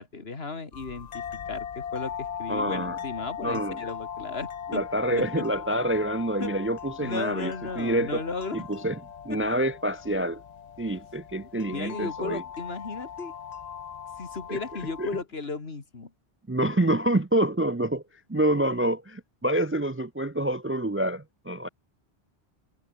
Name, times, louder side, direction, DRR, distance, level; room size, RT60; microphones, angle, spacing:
voice 1, 0.0-4.8 5.1-5.2 6.4-6.5 7.0-8.6 9.3-9.4 11.7-13.3 14.2-16.1, left 4 dB, 70° left, 2.5 m, -35 dB
sound 1, 0.7-15.2, left 8 dB, 45° left, 0.6 m, -39 dB
voice 2, 2.5-3.0 3.4-3.8 4.7-8.2 8.5-9.0 9.2-10.4 10.8-12.4 14.5-14.6 15.0-15.1 16.5-18.0 18.3-21.7, right 1 dB, 15° right, 0.4 m, -27 dB
omnidirectional pair, 1.1 m